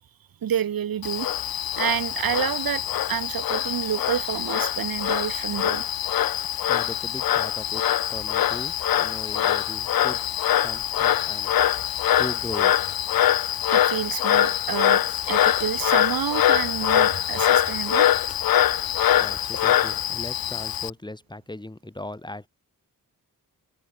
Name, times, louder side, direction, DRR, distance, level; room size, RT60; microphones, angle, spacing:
voice 1, 0.4-1.3 1.8-2.8 3.1-5.9 13.7-18.1, right 9 dB, 75° right, 0.9 m, -29 dB
Frog, 1.0-20.9, left 11 dB, 80° left, 0.6 m, -23 dB
voice 2, 6.4-7.8 8.1-10.2 10.6-11.8 12.2-12.7 19.1-22.5, left 1 dB, 10° left, 2.0 m, -38 dB
sound 1, 15.0-20.8, left 5 dB, 40° left, 1.5 m, -47 dB
wide cardioid pair, 150°, 35 cm